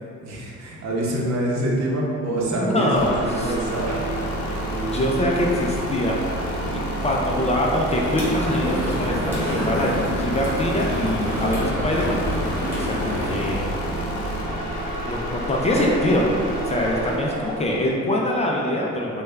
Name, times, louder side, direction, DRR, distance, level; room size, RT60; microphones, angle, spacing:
voice 1, 0.2-4.0, right 1 dB, 60° right, -3 dB, 0.8 m, -26 dB
sound 1, 2.3-17.4, right 5 dB, 45° right, 0.4 m, -37 dB
voice 2, 2.5-3.5 4.7-9.9 10.2-12.2 12.8-13.7 15.0-16.3 16.7-19.2, left 1 dB, 20° left, -2 dB, 0.4 m, -24 dB
sound 2, 2.9-17.9, equal, 65° left, 0.7 m, -29 dB
Street atm, 7.9-13.6, equal, 5° right, 1.2 m, -28 dB
3.2 x 2.3 x 3.2 m, 2.3 s
cardioid pair, 90°, 30 cm